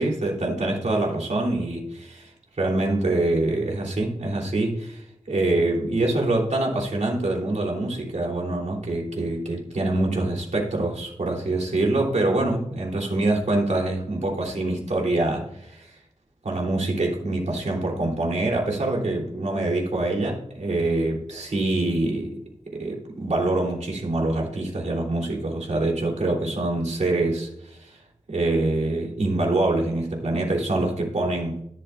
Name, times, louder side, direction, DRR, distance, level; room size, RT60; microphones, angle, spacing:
voice 1, 0.0-2.3 2.6-15.9 16.4-22.4 22.7-28.0 28.3-31.6, right 2 dB, 75° right, -2 dB, 3.3 m, -25 dB
13.0 x 11.5 x 2.5 m, 0.76 s
wide cardioid pair, 70°, 12 cm